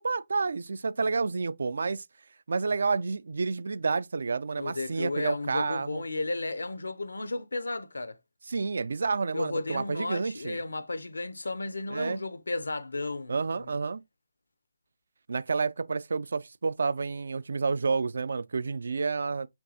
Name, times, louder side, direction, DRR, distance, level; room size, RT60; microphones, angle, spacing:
voice 1, 0.0-2.0 2.5-6.0 8.5-10.6 11.9-12.2 13.3-14.0 15.3-19.5, right 4 dB, 65° right, 0.3 m, -29 dB
voice 2, 4.6-8.2 9.3-13.7, left 2 dB, 80° left, 0.6 m, -34 dB
5.8 x 2.3 x 2.7 m
figure-of-eight pair, 150°, 0 cm